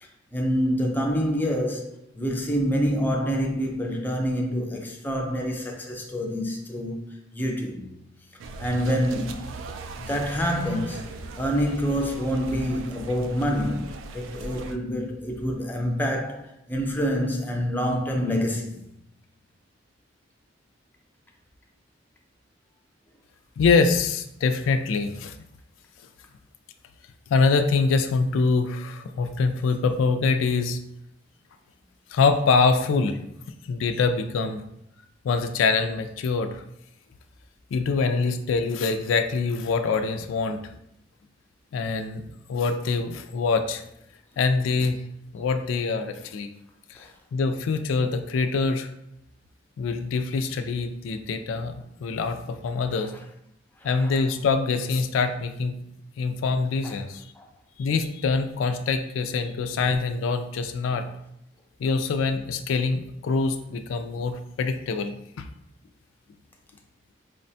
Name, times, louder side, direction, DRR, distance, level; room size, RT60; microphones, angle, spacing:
voice 1, 0.0-7.1 7.3-7.9 8.6-9.6 10.0-11.1 11.3-18.8 47.0-47.1 53.8-54.2 56.8-56.9 57.4-57.5 60.9-61.0, equal, 10° left, 0.4 m, -27 dB
sound 1, 8.4-14.8, right 3 dB, 85° right, 0.3 m, -38 dB
voice 2, 23.6-25.3 27.3-30.8 32.1-33.2 33.7-34.6 35.2-36.6 37.7-40.6 41.7-42.2 42.5-43.8 44.4-45.0 45.3-46.5 46.9-48.9 49.8-51.7 52.0-53.1 53.8-55.8 56.2-57.2 57.8-61.0 61.8-65.5, left 4 dB, 85° left, 0.3 m, -24 dB
4.8 x 2.1 x 2.6 m
head